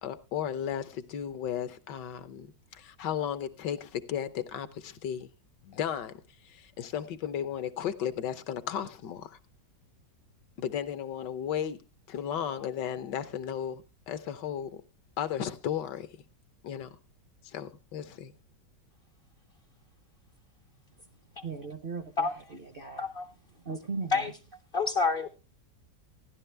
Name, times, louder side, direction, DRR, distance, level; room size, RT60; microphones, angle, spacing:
voice 1, 0.0-5.3 5.6-9.4 10.6-11.8 12.1-14.8 15.2-16.1 16.6-17.0 17.4-18.3, left 9 dB, 75° left, 1.5 m, -35 dB
voice 2, 21.4-23.1 23.5-24.3, right 4 dB, 45° right, 0.7 m, -38 dB
voice 3, 24.7-25.4, left 4 dB, 55° left, 0.6 m, -28 dB
15.0 x 11.0 x 3.3 m
omnidirectional pair, 1.9 m